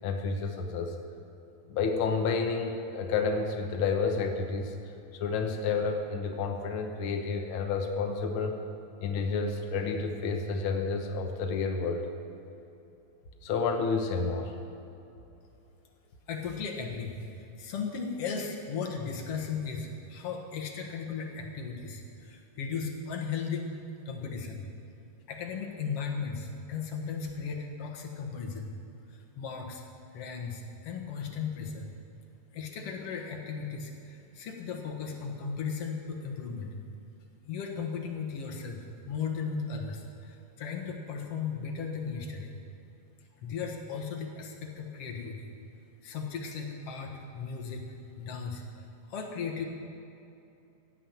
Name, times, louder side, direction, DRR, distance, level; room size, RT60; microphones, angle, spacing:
voice 1, 0.0-0.9 1.7-4.7 5.1-8.5 9.0-12.1 13.4-14.5, left 4 dB, 80° left, 3 dB, 1.1 m, -30 dB
voice 2, 16.3-23.7 24.1-24.6 25.3-28.7 29.1-29.8 30.1-31.9 32.5-36.7 37.5-38.8 39.1-42.5 43.4-45.5 46.0-49.7, left 5 dB, 55° left, 1 dB, 2.1 m, -36 dB
15.5 x 7.6 x 8.8 m, 2.8 s
omnidirectional pair, 3.9 m